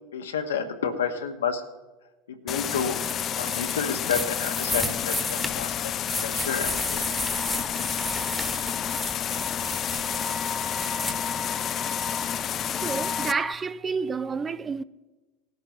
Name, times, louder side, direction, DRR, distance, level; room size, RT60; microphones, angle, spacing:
voice 1, 0.1-1.6 2.3-3.0 3.4-7.0, left 6 dB, 85° left, 1.2 m, -30 dB
sound 1, 2.5-13.3, left 9 dB, 40° left, 0.4 m, -30 dB
sound 2, 3.0-11.1, left 1 dB, 5° left, 1.3 m, -33 dB
sound 3, 6.4-13.5, left 3 dB, 20° left, 1.2 m, -37 dB
voice 2, 12.8-14.8, right 5 dB, 25° right, 0.5 m, -29 dB
18.5 x 10.5 x 3.1 m
hypercardioid pair, 90°, 0 cm